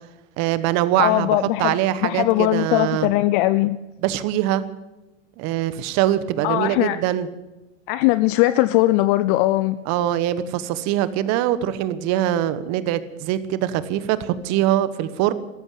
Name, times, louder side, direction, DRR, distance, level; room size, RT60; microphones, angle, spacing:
voice 1, 0.4-3.1 4.0-4.7 5.4-7.3 9.9-15.3, right 12 dB, 45° right, 14 dB, 1.2 m, -23 dB
voice 2, 1.0-1.8 2.0-3.8 6.4-7.0 7.9-9.8, left 16 dB, 45° left, 14 dB, 0.6 m, -19 dB
13.5 x 13.5 x 7.2 m, 1.0 s
hypercardioid pair, 105°, 38 cm